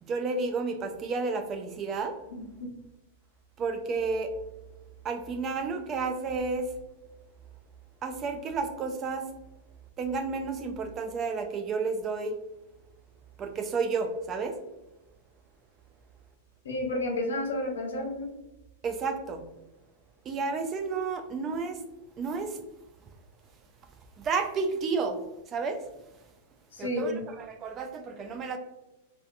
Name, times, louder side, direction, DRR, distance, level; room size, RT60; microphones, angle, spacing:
voice 1, 0.0-2.2 3.6-4.3 5.0-6.7 8.0-9.2 10.0-12.3 13.4-14.6 18.8-19.4 20.3-21.8 22.2-22.6 24.2-25.2 25.5-25.8 26.8-28.6, right 4 dB, 25° right, 6 dB, 0.3 m, -31 dB
voice 2, 16.6-18.3 26.7-27.2, left 1 dB, 85° left, 1 dB, 0.7 m, -31 dB
2.6 x 2.2 x 2.4 m, 0.98 s
hypercardioid pair, 135°, 0 cm